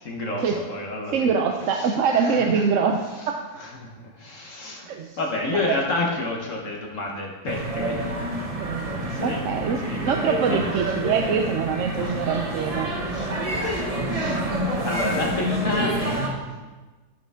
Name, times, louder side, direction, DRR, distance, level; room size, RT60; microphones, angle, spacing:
voice 1, 0.0-1.3 1.7-2.6 3.6-4.9 5.2-8.0 9.1-9.4 9.8-10.6 11.9-12.2 13.0-16.4, left 2 dB, 55° left, -1 dB, 1.6 m, -30 dB
voice 2, 1.1-3.1 4.9-5.2 5.5-5.8 8.6-12.9, right 6 dB, 65° right, 3 dB, 0.9 m, -24 dB
sound 1, 7.5-16.3, right 1 dB, 25° right, 1.1 m, -28 dB
13.5 x 6.9 x 3.5 m, 1.3 s
omnidirectional pair, 1.6 m